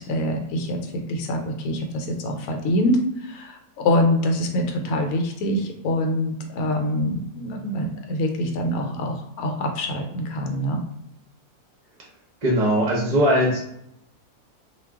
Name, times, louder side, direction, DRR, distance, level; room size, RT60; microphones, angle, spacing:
voice 1, 0.0-10.8, left 1 dB, 75° left, 3 dB, 1.0 m, -25 dB
voice 2, 12.4-13.6, equal, 45° right, -3 dB, 0.5 m, -19 dB
2.3 x 2.2 x 3.4 m, 0.75 s
omnidirectional pair, 1.5 m